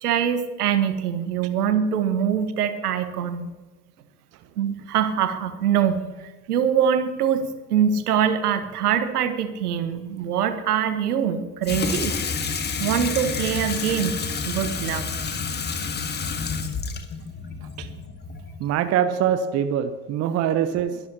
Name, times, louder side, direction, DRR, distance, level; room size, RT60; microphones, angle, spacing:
voice 1, 0.0-3.5 4.6-12.2 12.8-14.2 14.4-15.0, right 8 dB, 65° right, 9 dB, 1.6 m, -23 dB
Water tap faucet / Sink (filling or washing), 11.6-18.7, left 5 dB, 20° left, 1.7 m, -29 dB
voice 2, 18.6-21.0, right 9 dB, 30° right, 10 dB, 0.9 m, -23 dB
23.0 x 12.0 x 2.9 m, 1.2 s
figure-of-eight pair, 80°, 49 cm